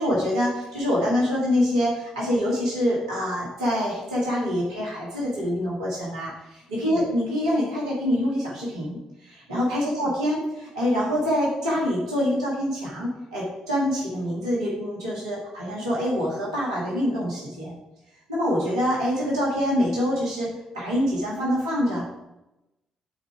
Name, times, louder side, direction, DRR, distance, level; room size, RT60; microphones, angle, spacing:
voice 1, 0.0-17.7 18.3-22.1, equal, 85° right, -6 dB, 1.8 m, -25 dB
8.5 x 4.3 x 4.8 m, 0.93 s
figure-of-eight pair, 40°, 3 cm